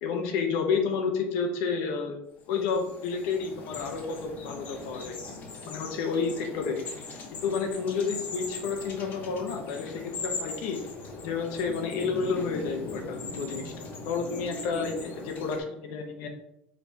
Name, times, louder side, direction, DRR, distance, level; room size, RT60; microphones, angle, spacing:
voice 1, 0.0-2.2 2.5-5.1 5.7-6.8 7.3-10.8 11.2-16.3, left 5 dB, 75° left, 4 dB, 0.8 m, -30 dB
sound 1, 2.4-15.6, left 3 dB, 45° left, 0.9 m, -40 dB
5.2 x 3.3 x 2.7 m, 0.77 s
cardioid pair, 140°, 5 cm